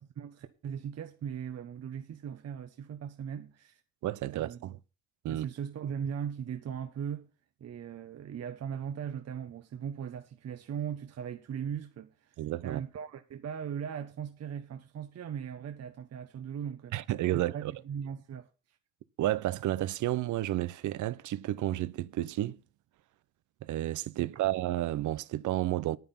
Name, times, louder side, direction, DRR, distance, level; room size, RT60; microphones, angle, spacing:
voice 1, 0.1-3.8 4.3-4.6 5.3-7.3 7.6-12.4 12.6-16.9 17.3-18.8, right 8 dB, 55° right, 1.1 m, -39 dB
voice 2, 4.0-4.8 5.2-5.5 12.4-12.8 16.9-17.7 19.2-22.6 23.6-26.0, right 14 dB, 80° right, 0.8 m, -31 dB
9.5 x 9.3 x 5.9 m
cardioid pair, 90°, 30 cm